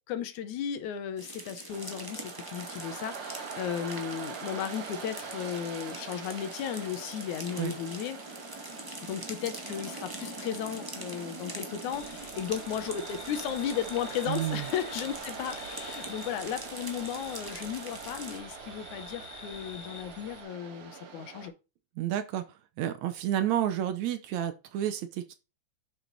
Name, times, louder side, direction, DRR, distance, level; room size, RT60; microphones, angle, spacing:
voice 1, 0.1-8.2 9.0-21.5, left 9 dB, 70° left, 2.3 m, -35 dB
sound 1, 1.2-18.4, right 1 dB, 10° right, 1.0 m, -44 dB
Waves surf, 1.7-21.5, right 6 dB, 55° right, 1.9 m, -43 dB
sound 2, 11.9-20.4, left 5 dB, 35° left, 3.3 m, -48 dB
voice 2, 14.3-14.6 22.0-22.4 22.8-25.3, right 11 dB, 70° right, 2.0 m, -30 dB
7.9 x 6.7 x 4.0 m
omnidirectional pair, 3.6 m